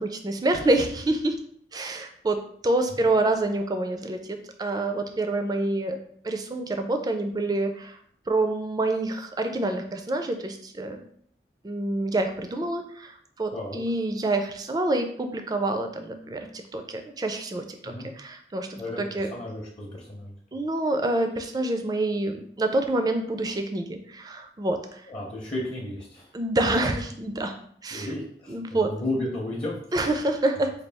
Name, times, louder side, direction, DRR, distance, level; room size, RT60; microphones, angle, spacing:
voice 1, 0.0-1.4 1.7-6.0 6.2-8.0 8.3-11.0 11.6-19.3 20.5-25.0 26.3-27.5 27.8-28.1 28.5-28.9 29.9-30.7, right 2 dB, 20° right, 6 dB, 0.3 m, -27 dB
voice 2, 13.5-13.8 17.8-18.1 18.8-20.3 25.1-26.3 27.9-30.2, left 1 dB, 30° left, -3 dB, 0.6 m, -34 dB
4.2 x 2.3 x 3.4 m, 0.62 s
head